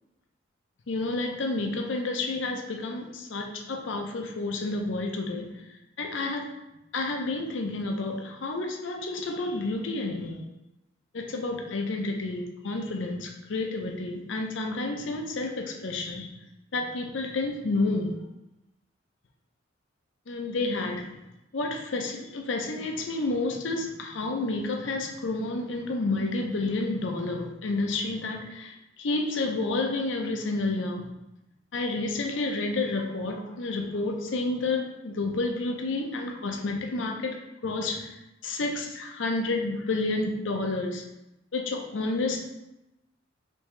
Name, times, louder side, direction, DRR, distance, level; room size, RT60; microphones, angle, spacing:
voice 1, 0.9-5.5 6.0-6.5 6.9-10.5 11.1-16.3 16.7-18.1 20.3-21.1 21.5-31.1 31.7-37.4 37.6-38.1 38.4-41.0 41.5-42.4, left 2 dB, 65° left, 2 dB, 0.6 m, -30 dB
5.2 x 2.7 x 3.1 m, 0.94 s
head